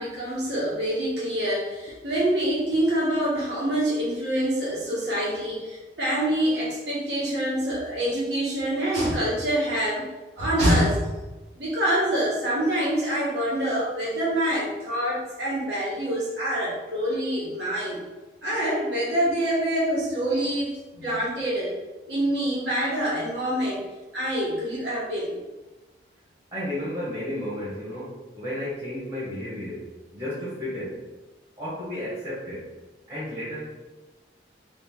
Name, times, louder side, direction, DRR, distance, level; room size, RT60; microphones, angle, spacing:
voice 1, 0.0-10.1 10.4-11.1 11.6-18.0 18.4-20.7 20.9-21.7 22.1-23.8 24.1-25.3, right 1 dB, 70° right, -7 dB, 1.4 m, -26 dB
voice 2, 26.5-29.8 30.1-31.0 31.6-32.7 33.1-33.8, left 1 dB, 30° right, -9 dB, 1.0 m, -33 dB
3.3 x 2.4 x 3.5 m, 1.1 s
head